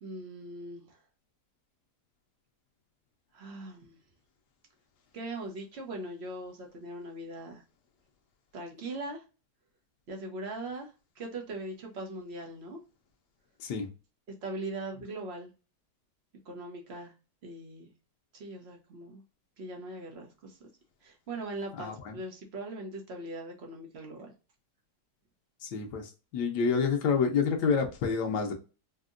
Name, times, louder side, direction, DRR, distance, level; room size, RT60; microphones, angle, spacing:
voice 1, 0.0-1.0 3.3-4.0 5.1-7.6 8.5-9.2 10.1-12.8 14.4-15.5 16.4-17.1 17.4-17.9 18.3-19.2 19.6-20.6 21.0-24.3, right 2 dB, 45° right, 1.0 m, -40 dB
voice 2, 21.8-22.2 25.6-28.5, left 5 dB, 90° left, 1.3 m, -28 dB
4.5 x 2.1 x 2.4 m
omnidirectional pair, 1.7 m